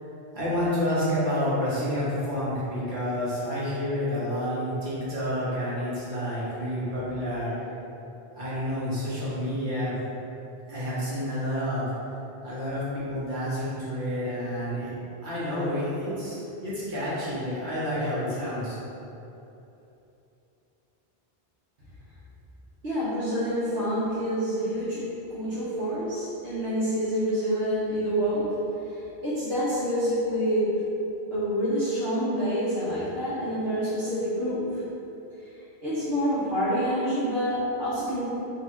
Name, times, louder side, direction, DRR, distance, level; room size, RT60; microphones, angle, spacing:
voice 1, 0.3-7.5 8.3-9.9 10.7-11.9 12.4-14.9 15.2-16.4 16.6-18.8, equal, 55° right, -10 dB, 1.5 m, -29 dB
voice 2, 22.8-25.0 25.3-28.4 28.9-29.0 29.2-30.7 31.3-34.8 35.8-38.3, equal, 70° right, -12 dB, 1.2 m, -27 dB
3.8 x 2.9 x 4.4 m, 2.9 s
omnidirectional pair, 1.0 m